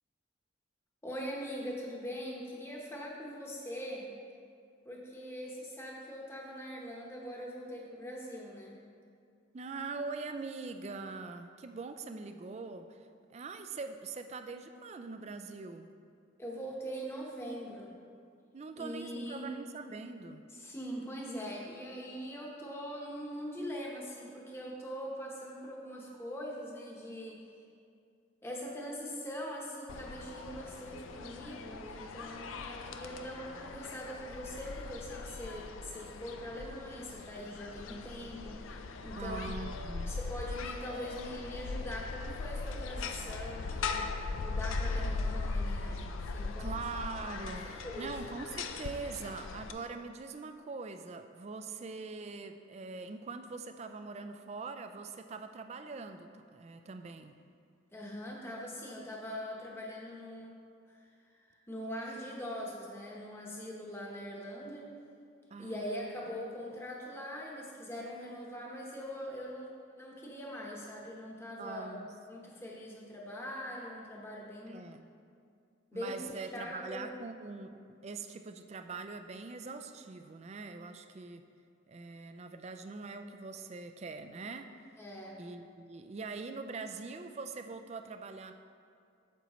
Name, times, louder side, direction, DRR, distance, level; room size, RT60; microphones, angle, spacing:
voice 1, 1.0-4.1 4.8-8.8 16.4-18.0 18.8-19.5 20.5-27.5 28.4-39.7 40.1-44.1 44.4-46.7 47.8-48.1 57.9-60.5 60.9-61.0 61.3-64.9 65.6-69.7 70.0-74.8 75.9-77.1 85.0-85.4, equal, 10° left, -3 dB, 1.0 m, -42 dB
voice 2, 9.5-15.9 18.5-20.4 39.2-40.1 46.6-57.3 65.5-66.1 71.6-72.1 74.7-75.1 75.9-81.4 81.9-84.7 85.4-88.5, right 4 dB, 35° right, 8 dB, 0.3 m, -43 dB
sound 1, 29.9-49.7, left 3 dB, 85° left, 0.5 m, -39 dB
8.7 x 7.0 x 3.0 m, 2.3 s
head